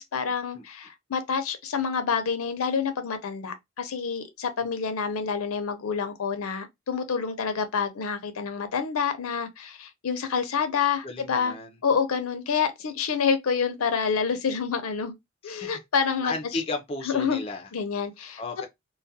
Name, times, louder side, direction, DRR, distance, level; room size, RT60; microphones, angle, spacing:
voice 1, 0.0-11.5 11.8-15.1 15.4-16.3 17.1-17.4 17.7-18.4, left 6 dB, 85° left, 0.5 m, -28 dB
voice 2, 11.0-11.7 15.4-15.8 16.2-17.7 18.4-18.7, left 3 dB, 25° left, 0.3 m, -34 dB
2.3 x 2.1 x 2.6 m
head